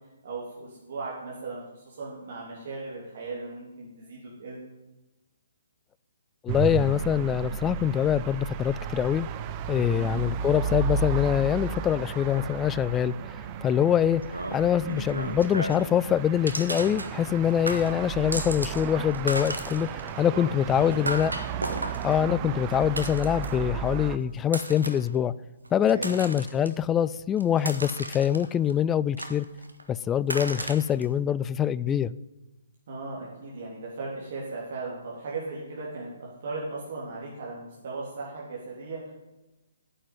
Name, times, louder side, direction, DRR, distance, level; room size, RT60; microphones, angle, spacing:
voice 1, 0.2-4.6 9.8-10.3 20.3-20.5 20.8-21.0 25.8-26.2 32.9-39.1, right 3 dB, 55° right, -4 dB, 3.2 m, -37 dB
voice 2, 6.4-9.3 9.7-21.3 22.0-25.3 25.7-29.5 29.9-32.2, left 9 dB, 15° left, 19 dB, 0.3 m, -24 dB
sound 1, 6.5-24.2, right 7 dB, 30° right, 0.7 m, -34 dB
sound 2, 14.2-16.0 16.5-17.4 17.7-18.8 19.1-23.7 24.4-25.1 25.7-26.7 27.2-28.7 29.2-29.8 30.3-31.0, right 1 dB, 90° right, 1.7 m, -35 dB
9.8 x 7.6 x 9.4 m, 1.1 s
figure-of-eight pair, 130°, 0 cm